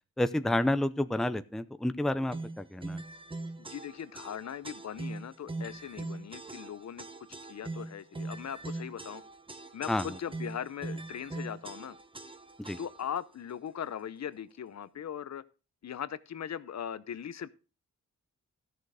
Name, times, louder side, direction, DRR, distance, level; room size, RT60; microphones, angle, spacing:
voice 1, 0.2-3.0 9.9-10.2 12.6-12.8, left 1 dB, ahead, 0.6 m, -30 dB
sound 1, 2.3-13.2, right 2 dB, 15° right, 1.0 m, -41 dB
voice 2, 3.6-7.1 7.5-9.2 9.7-12.0 12.8-15.4 15.8-17.5, left 9 dB, 55° left, 0.7 m, -39 dB
13.5 x 6.7 x 4.8 m
wide cardioid pair, 120°, 32 cm